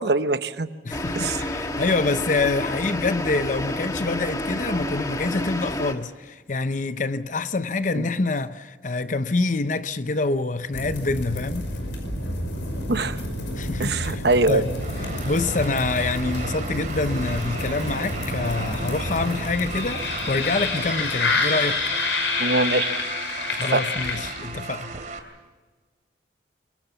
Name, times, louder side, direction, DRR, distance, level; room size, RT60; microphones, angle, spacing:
voice 1, 0.0-0.7 1.2-1.4 7.9-8.0 12.9-13.2 13.8-14.6 22.4-22.9 23.6-23.8, right 2 dB, 60° right, 1.0 m, -22 dB
voice 2, 0.8-11.7 13.5-14.7 15.3-21.8 23.5-24.9, left 3 dB, 45° left, 0.7 m, -26 dB
sound 1, 0.9-5.9, left 1 dB, 20° left, 1.4 m, -29 dB
sound 2, 10.7-24.6, left 2 dB, 85° left, 5.6 m, -28 dB
sound 3, 14.8-25.2, right 4 dB, 45° right, 2.6 m, -36 dB
24.5 x 23.0 x 7.0 m
head